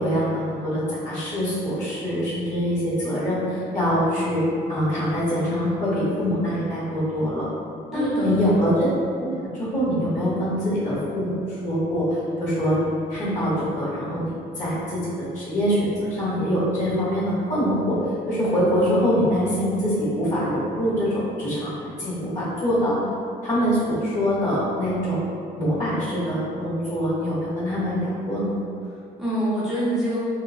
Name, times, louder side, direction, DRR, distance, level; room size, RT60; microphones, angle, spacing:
voice 1, 0.0-4.4 4.7-7.5 7.9-8.7 9.2-18.0 18.3-22.9 23.4-25.2 25.6-28.6, equal, 45° left, -10 dB, 1.3 m, -24 dB
voice 2, 7.9-8.5 28.9-30.2, right 1 dB, ahead, -11 dB, 0.6 m, -26 dB
2.8 x 2.1 x 2.7 m, 2.4 s
cardioid pair, 110°, 17 cm